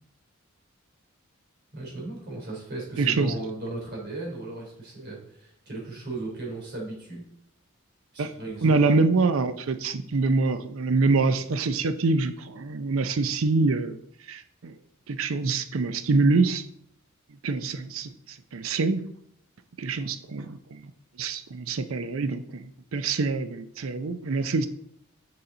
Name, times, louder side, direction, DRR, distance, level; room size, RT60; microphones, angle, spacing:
voice 1, 1.7-7.3 8.1-8.8, right 2 dB, 55° right, -3 dB, 3.2 m, -36 dB
voice 2, 3.0-3.3 8.2-8.3 8.6-14.0 14.3-14.8 15.1-16.6 17.4-19.0 19.8-20.9 21.2-24.7, right 3 dB, 70° right, 11 dB, 0.5 m, -25 dB
6.7 x 5.8 x 3.8 m, 0.69 s
head